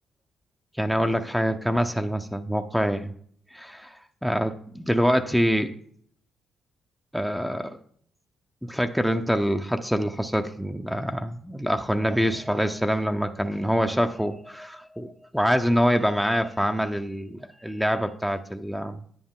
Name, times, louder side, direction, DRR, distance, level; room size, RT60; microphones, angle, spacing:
voice 1, 0.8-3.1 3.5-5.7 7.1-7.8 8.6-19.1, equal, ahead, 7 dB, 0.6 m, -25 dB
9.5 x 9.3 x 3.7 m, 0.62 s
cardioid pair, 90°, 0 cm